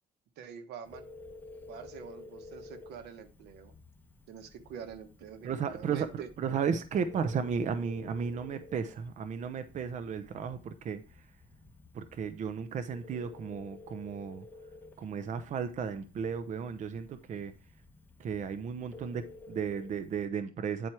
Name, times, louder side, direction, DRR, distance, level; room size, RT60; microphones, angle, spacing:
voice 1, 0.4-1.1 1.7-3.7 4.3-6.3, right 7 dB, 80° right, 1.2 m, -46 dB
Telephone, 0.8-20.3, left 3 dB, 10° left, 1.3 m, -53 dB
voice 2, 5.4-11.2 11.9-14.5 15.0-17.5 18.2-20.9, right 6 dB, 45° right, 0.7 m, -34 dB
9.3 x 4.4 x 4.7 m
cardioid pair, 110°, 17 cm